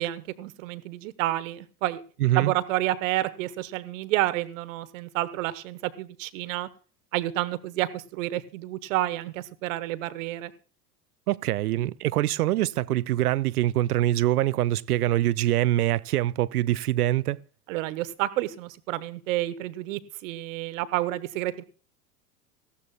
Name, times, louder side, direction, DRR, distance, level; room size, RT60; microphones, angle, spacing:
voice 1, 0.0-2.0 2.3-6.7 7.1-10.5 17.7-21.6, right 16 dB, 55° right, 1.0 m, -29 dB
voice 2, 2.2-2.5 11.3-17.4, right 14 dB, 70° right, 0.5 m, -24 dB
18.0 x 15.0 x 2.3 m
figure-of-eight pair, 90°, 47 cm